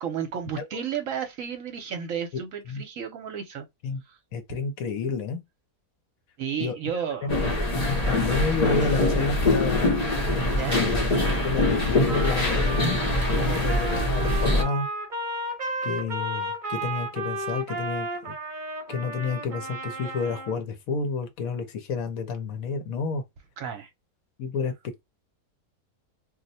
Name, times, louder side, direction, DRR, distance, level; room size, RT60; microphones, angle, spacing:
voice 1, 0.0-3.7 4.1-4.2 4.5-4.6 6.4-7.3 10.6-10.8 13.4-13.7 23.6-23.9, right 8 dB, 65° right, 1.0 m, -32 dB
voice 2, 4.3-5.4 6.6-6.8 7.2-7.5 7.9-10.0 10.7-11.1 11.4-13.0 13.3-14.9 15.8-18.3 18.9-23.2 24.4-24.7, left 4 dB, 70° left, 1.0 m, -30 dB
sound 1, 7.3-14.6, left 1 dB, 35° left, 0.7 m, -24 dB
sound 2, 8.8-9.1 10.5-10.8, right 1 dB, 10° right, 0.3 m, -41 dB
Trumpet, 12.1-20.6, right 2 dB, 35° right, 1.0 m, -33 dB
2.6 x 2.1 x 4.0 m
omnidirectional pair, 1.6 m